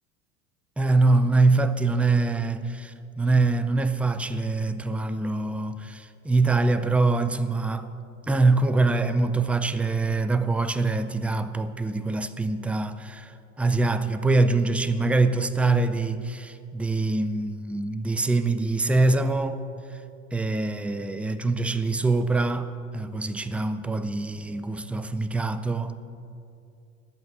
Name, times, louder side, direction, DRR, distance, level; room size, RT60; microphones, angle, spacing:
voice 1, 0.8-7.9 8.3-19.6 20.3-26.0, right 3 dB, 5° right, 0.3 m, -24 dB
12.0 x 8.0 x 7.6 m
hypercardioid pair, 80°, 41 cm